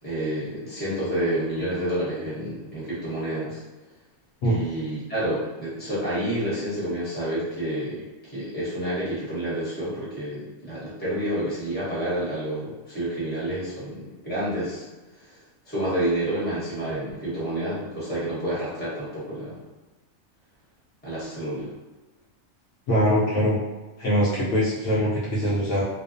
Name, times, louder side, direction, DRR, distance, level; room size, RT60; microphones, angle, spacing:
voice 1, 0.0-3.6 4.4-8.1 8.3-14.9 15.3-15.4 15.6-19.6 21.0-21.7, right 1 dB, 10° left, -9 dB, 0.9 m, -29 dB
voice 2, 22.9-23.6 24.0-25.8, equal, 70° left, -7 dB, 0.9 m, -22 dB
2.4 x 2.2 x 2.5 m, 1.1 s
omnidirectional pair, 1.4 m